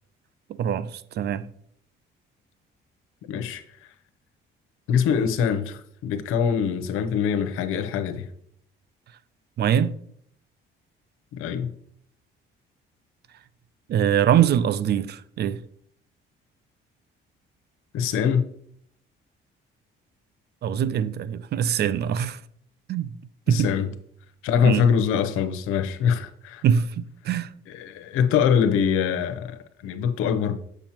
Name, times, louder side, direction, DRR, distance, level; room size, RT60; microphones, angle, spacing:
voice 1, 0.6-1.5 9.6-9.9 13.9-15.6 20.6-22.4 22.9-23.1 23.5-23.7 24.6-24.9 26.6-27.5, right 9 dB, 50° right, 0.4 m, -23 dB
voice 2, 3.3-3.6 4.9-8.3 11.3-11.7 17.9-18.5 23.5-23.9 24.4-26.6 27.7-30.6, left 7 dB, 90° left, 0.7 m, -23 dB
7.1 x 6.3 x 2.9 m
cardioid pair, 105°, 21 cm